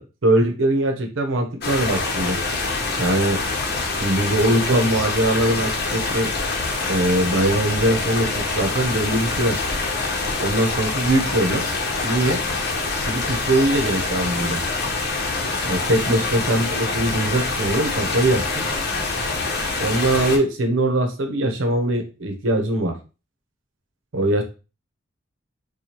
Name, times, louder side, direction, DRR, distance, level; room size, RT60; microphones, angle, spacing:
voice 1, 0.0-2.4 3.0-3.4 4.0-6.3 6.9-9.6 10.4-11.7 12.0-12.4 13.1-14.6 15.6-18.7 19.8-23.0 24.1-24.4, right 1 dB, 80° right, 5 dB, 0.8 m, -21 dB
sound 1, 1.6-20.4, left 3 dB, 55° left, 0.9 m, -25 dB
4.8 x 2.3 x 2.9 m, 0.32 s
head